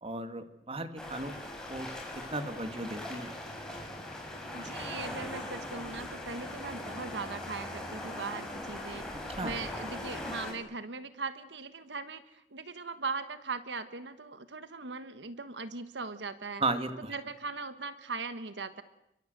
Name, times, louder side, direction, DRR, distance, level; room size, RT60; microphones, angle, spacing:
voice 1, 0.0-1.3 1.7-1.9 2.3-3.4 9.1-9.5 16.6-17.1, right 2 dB, 35° right, 9 dB, 2.2 m, -35 dB
sound 1, 1.0-10.5, left 1 dB, 5° left, 6.5 m, -40 dB
voice 2, 4.5-16.6 17.1-18.8, right 4 dB, 85° right, 12 dB, 1.5 m, -39 dB
29.5 x 24.0 x 8.0 m, 0.82 s
head